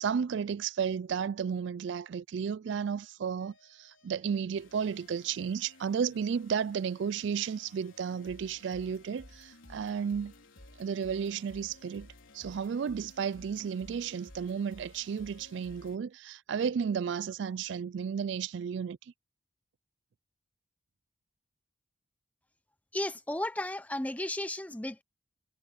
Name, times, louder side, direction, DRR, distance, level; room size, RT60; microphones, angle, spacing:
voice 1, 0.0-10.3 10.8-12.1 12.3-19.0, right 7 dB, 70° right, 0.3 m, -33 dB
sound 1, 3.4-16.0, left 1 dB, 85° left, 4.3 m, -55 dB
voice 2, 22.9-25.0, left 1 dB, 5° left, 0.7 m, -34 dB
head